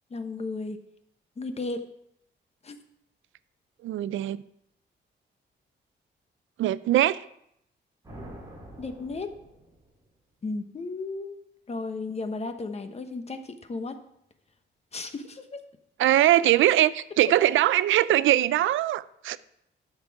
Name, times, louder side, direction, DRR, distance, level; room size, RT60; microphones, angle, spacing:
voice 1, 0.1-0.8 1.4-1.8 2.6-2.8 8.8-9.3 10.4-11.4 11.7-14.0 14.9-15.6, left 3 dB, 35° left, 8 dB, 1.0 m, -34 dB
voice 2, 3.8-4.4 6.6-7.2 16.0-19.4, right 13 dB, 85° right, 17 dB, 0.4 m, -22 dB
sound 1, 8.0-10.2, right 1 dB, 20° right, 3.3 m, -46 dB
11.5 x 6.7 x 4.7 m, 0.74 s
cardioid pair, 120°, 20 cm